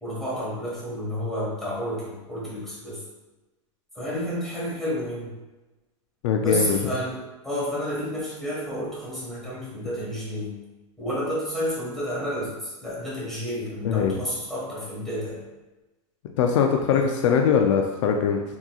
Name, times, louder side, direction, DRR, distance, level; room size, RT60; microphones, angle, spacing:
voice 1, 0.0-3.0 3.9-5.3 6.3-10.5 11.0-15.4 16.8-17.1, equal, ahead, -8 dB, 1.4 m, -30 dB
voice 2, 6.2-6.8 13.8-14.2 16.4-18.4, left 6 dB, 65° left, 3 dB, 0.4 m, -21 dB
3.6 x 2.9 x 2.3 m, 1.1 s
supercardioid pair, 135°, 17 cm